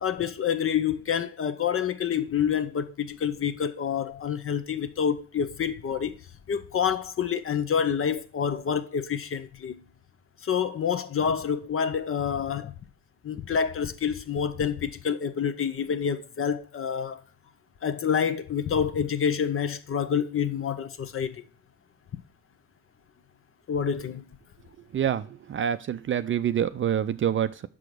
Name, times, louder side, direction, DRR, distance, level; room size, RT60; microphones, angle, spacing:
voice 1, 0.0-6.1 6.5-9.8 10.4-12.7 13.2-17.2 17.8-21.5 23.7-24.2, left 7 dB, 40° left, 0.8 m, -27 dB
voice 2, 24.9-27.7, right 9 dB, 40° right, 0.5 m, -27 dB
6.0 x 4.9 x 6.0 m
supercardioid pair, 60°, 33 cm